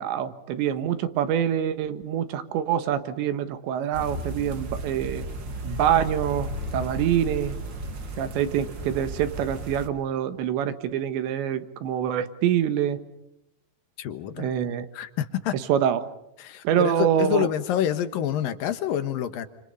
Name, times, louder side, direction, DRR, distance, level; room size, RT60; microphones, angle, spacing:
voice 1, 0.0-5.2 5.6-7.6 8.2-13.0 14.4-14.9 15.5-16.1 16.7-17.5, right 9 dB, 75° right, 10 dB, 3.7 m, -25 dB
sound 1, 3.9-9.9, right 1 dB, 90° right, 1.0 m, -34 dB
voice 2, 14.0-14.6 14.9-15.5 16.4-19.5, left 10 dB, 65° left, 10 dB, 2.5 m, -27 dB
29.5 x 28.0 x 5.5 m, 0.85 s
omnidirectional pair, 5.3 m